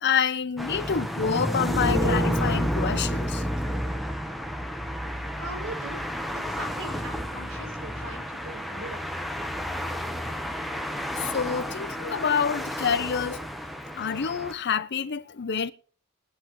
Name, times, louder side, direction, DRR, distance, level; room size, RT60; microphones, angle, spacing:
voice 1, 0.0-3.4 11.1-13.4 13.9-15.7, left 7 dB, 50° left, 0.7 m, -27 dB
sound 1, 0.6-14.5, equal, ahead, 0.9 m, -31 dB
sound 2, 1.2-4.7, equal, 80° right, 2.1 m, -36 dB
voice 2, 5.4-6.0 6.5-9.3, right 1 dB, 65° right, 5.9 m, -40 dB
21.5 x 8.3 x 3.1 m
head